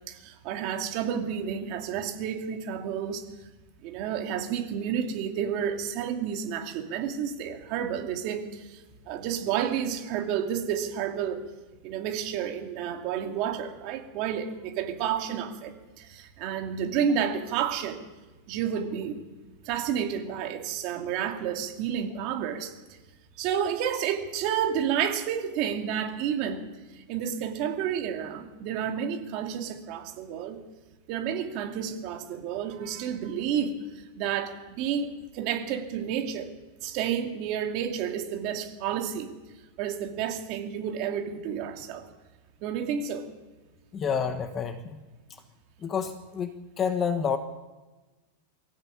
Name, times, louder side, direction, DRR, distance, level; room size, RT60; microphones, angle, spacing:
voice 1, 0.1-3.2 3.8-11.4 11.8-18.0 18.5-19.2 19.6-22.7 23.4-26.6 26.9-30.6 31.1-33.8 34.2-36.5 36.8-39.3 39.8-42.1 42.6-43.3, right 8 dB, 35° right, 3 dB, 2.9 m, -30 dB
voice 2, 43.9-45.0 45.8-47.4, left 6 dB, 20° left, 9 dB, 1.1 m, -29 dB
23.5 x 16.5 x 8.7 m, 1.2 s
supercardioid pair, 170°, 0 cm